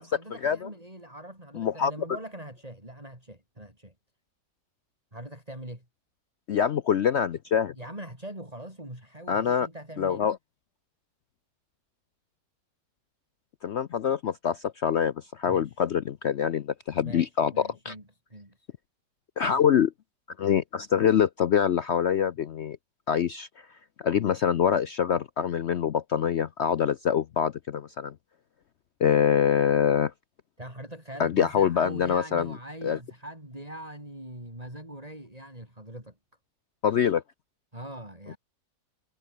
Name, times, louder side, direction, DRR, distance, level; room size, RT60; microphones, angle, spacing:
voice 1, 0.0-3.9 5.1-5.9 7.8-10.2 15.4-15.7 17.0-18.0 18.3-18.7 30.6-36.2 37.7-38.4, right 1 dB, 20° right, 7.2 m, -42 dB
voice 2, 1.5-1.9 6.5-7.7 9.3-9.7 10.0-10.4 13.6-17.9 19.4-19.9 20.4-22.8 23.1-23.5 24.0-28.1 29.0-30.1 31.2-32.5 32.8-33.0 36.8-37.2, left 8 dB, 75° left, 0.6 m, -25 dB
omnidirectional pair, 1.9 m